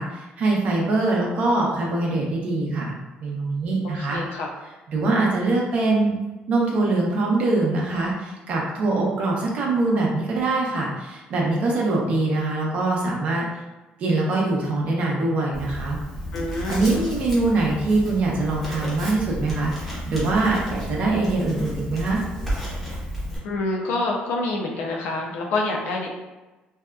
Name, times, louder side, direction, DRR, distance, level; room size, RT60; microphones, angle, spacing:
voice 1, 0.0-4.2 4.9-6.1 6.5-13.4 14.0-16.0 16.7-22.2, right 2 dB, 45° right, -2 dB, 0.6 m, -23 dB
voice 2, 3.8-4.5 16.3-16.9 23.4-26.1, left 2 dB, 75° left, 0 dB, 0.5 m, -27 dB
Writing, 15.5-23.4, equal, 5° left, 0.7 m, -32 dB
2.7 x 2.2 x 2.2 m, 1.1 s
cardioid pair, 175°, 3 cm